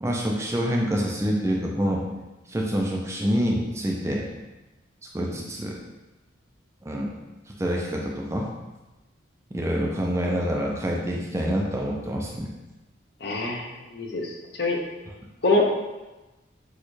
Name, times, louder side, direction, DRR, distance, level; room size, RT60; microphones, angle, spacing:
voice 1, 0.0-2.1 2.5-4.3 5.1-5.8 6.8-7.1 7.6-8.5 9.5-12.5, equal, 15° right, -1 dB, 0.4 m, -26 dB
voice 2, 13.2-14.8 15.4-15.7, left 2 dB, 55° left, 0 dB, 0.7 m, -25 dB
6.4 x 2.3 x 3.1 m, 1.1 s
head